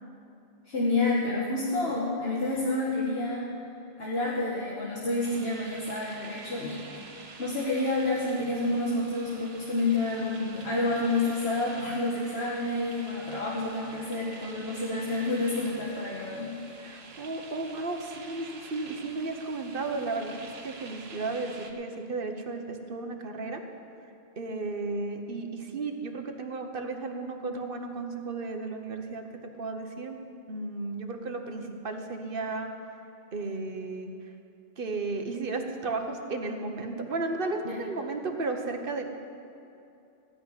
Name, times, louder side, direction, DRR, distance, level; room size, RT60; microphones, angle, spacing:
voice 1, 0.6-3.5 4.0-6.8 7.2-16.5 37.6-37.7, left 2 dB, 75° left, -5 dB, 1.6 m, -29 dB
sound 1, 5.2-21.7, right 4 dB, 80° right, 1.3 m, -47 dB
voice 2, 16.8-23.6 24.4-30.2 30.5-32.7 33.3-34.1 34.8-39.0, right 3 dB, 60° right, 4 dB, 1.2 m, -34 dB
16.0 x 5.5 x 9.7 m, 2.7 s
omnidirectional pair, 1.0 m